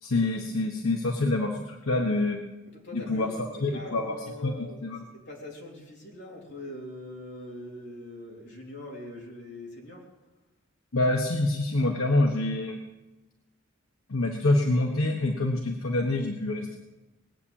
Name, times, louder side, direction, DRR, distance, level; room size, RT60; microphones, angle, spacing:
voice 1, 0.0-2.4 2.9-3.3 3.6-4.1 4.4-4.5 4.8-5.0 10.9-12.8 14.1-16.8, left 2 dB, 85° left, 1 dB, 1.3 m, -26 dB
voice 2, 2.7-4.9 5.1-10.1, left 1 dB, 55° left, -2 dB, 3.9 m, -42 dB
20.0 x 8.6 x 7.3 m, 1.1 s
head